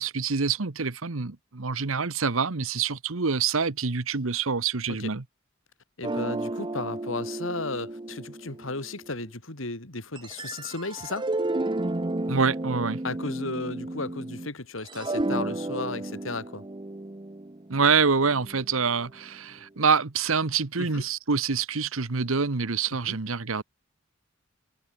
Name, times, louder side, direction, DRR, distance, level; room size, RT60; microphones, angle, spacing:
voice 1, 0.0-5.2 12.3-13.0 17.7-23.6, right 5 dB, 85° right, 1.2 m, -26 dB
voice 2, 6.0-11.3 13.0-16.6 20.8-21.0 23.1-23.2, left 3 dB, 75° left, 3.8 m, -34 dB
sound 1, 6.0-9.2 10.1-14.5 14.8-19.0, right 2 dB, 25° right, 0.7 m, -33 dB
head